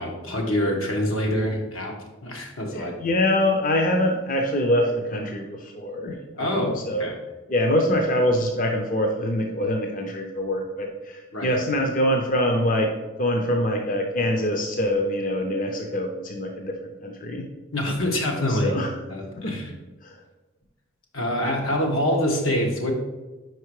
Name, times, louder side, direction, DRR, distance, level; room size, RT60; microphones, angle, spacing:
voice 1, 0.0-2.0 2.2-3.0 6.4-7.1 11.3-11.6 17.7-18.7 19.1-19.7 21.1-22.9, left 1 dB, 85° left, 1 dB, 1.3 m, -25 dB
voice 2, 2.7-7.1 7.5-12.9 13.2-17.5 18.1-18.2 18.5-18.9 19.3-19.5 20.0-20.2, left 1 dB, 40° left, 3 dB, 0.6 m, -24 dB
5.2 x 4.6 x 4.7 m, 1.2 s
head